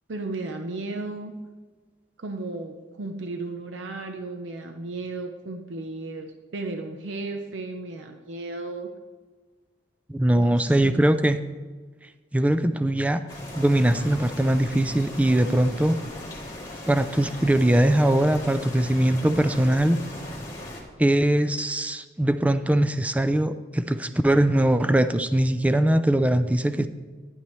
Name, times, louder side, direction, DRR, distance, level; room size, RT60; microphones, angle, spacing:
voice 1, 0.1-1.3 2.2-8.9 10.3-11.0, right 2 dB, 75° right, 5 dB, 0.7 m, -34 dB
voice 2, 10.1-11.4 12.3-13.2 13.6-16.0 16.8-20.0 21.0-26.9, right 1 dB, 5° right, 11 dB, 0.4 m, -21 dB
sound 1, 13.3-20.8, left 1 dB, 20° left, 1.9 m, -38 dB
11.5 x 10.5 x 3.1 m, 1.4 s
head